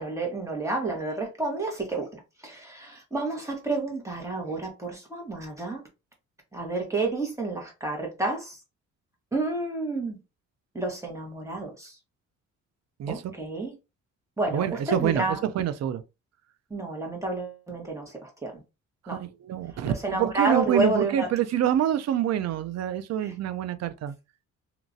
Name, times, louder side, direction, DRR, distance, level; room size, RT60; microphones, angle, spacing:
voice 1, 0.0-5.8 6.5-8.6 9.3-10.2 10.7-12.0 13.1-13.7 14.4-15.4 16.7-18.6 19.1-19.2 19.8-21.3 23.2-23.3, right 2 dB, 10° right, 1.4 m, -30 dB
voice 2, 13.0-13.3 14.5-16.0 19.0-24.2, right 11 dB, 60° right, 0.5 m, -27 dB
2.9 x 2.5 x 2.6 m
cardioid pair, 90°, 30 cm